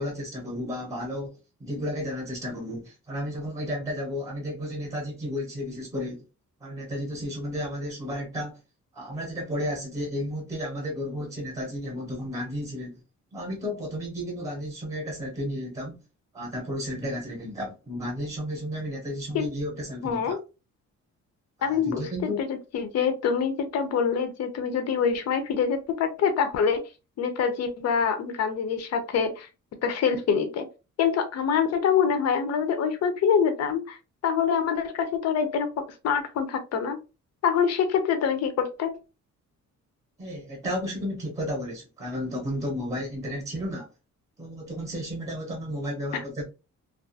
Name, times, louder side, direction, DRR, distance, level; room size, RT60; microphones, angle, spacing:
voice 1, 0.0-6.2 6.6-8.6 8.9-13.0 13.3-16.0 16.3-20.4 21.6-22.4 40.2-43.9 44.4-46.5, equal, 10° right, 0.7 m, -33 dB
voice 2, 20.0-20.4 21.6-22.1 22.4-26.8 27.2-29.5 29.8-30.7 31.0-34.0 34.2-37.0 37.4-38.9 46.1-46.2, left 6 dB, 55° left, 0.5 m, -25 dB
2.3 x 2.3 x 2.6 m
cardioid pair, 155°, 31 cm